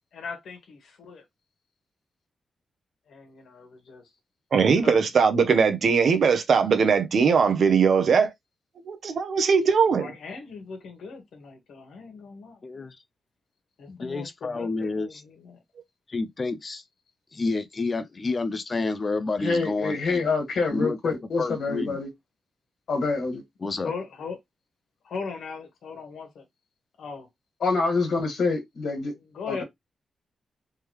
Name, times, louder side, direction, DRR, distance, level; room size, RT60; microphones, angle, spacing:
voice 1, 0.1-1.2 3.1-4.0 4.8-5.0 9.9-12.9 13.8-15.6 23.8-24.4 25.0-26.4 27.0-27.3 29.2-29.6, left 5 dB, 80° left, 1.4 m, -39 dB
voice 2, 4.5-8.3 8.9-10.1, right 5 dB, 50° right, 0.7 m, -20 dB
voice 3, 12.6-13.0 13.9-15.2 16.1-16.8 17.3-20.3 20.7-22.0 23.6-23.9, left 3 dB, 25° left, 0.4 m, -29 dB
voice 4, 19.4-22.1 22.9-23.4 27.6-29.1 29.5-29.6, left 3 dB, 60° left, 1.8 m, -26 dB
3.4 x 3.2 x 3.1 m
wide cardioid pair, 170°, 0 cm